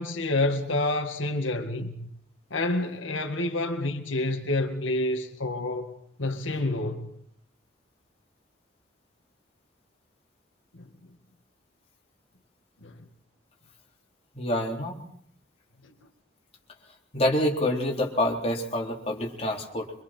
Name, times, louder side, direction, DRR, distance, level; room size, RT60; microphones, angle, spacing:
voice 1, 0.0-2.1 2.5-7.1 10.7-10.9 12.8-12.9, left 2 dB, 85° left, 2.0 m, -28 dB
voice 2, 14.4-15.0 17.1-19.9, left 1 dB, 30° left, 3.7 m, -27 dB
25.5 x 24.0 x 4.5 m
head